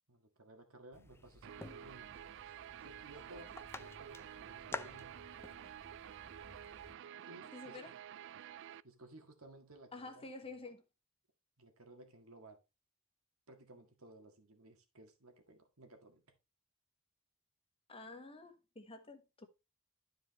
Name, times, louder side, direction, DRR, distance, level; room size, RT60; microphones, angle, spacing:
voice 1, 0.1-2.2 2.8-5.2 7.2-7.8 8.8-10.3 11.6-12.6 13.5-16.2, right 2 dB, 80° right, 1.9 m, -57 dB
sound 1, 0.9-6.9, left 3 dB, 10° left, 0.4 m, -51 dB
Guitar, 1.4-8.8, right 10 dB, 60° right, 0.3 m, -50 dB
voice 2, 7.5-7.9 9.9-10.8 17.9-19.5, left 3 dB, 25° left, 1.3 m, -49 dB
12.0 x 5.0 x 3.1 m
head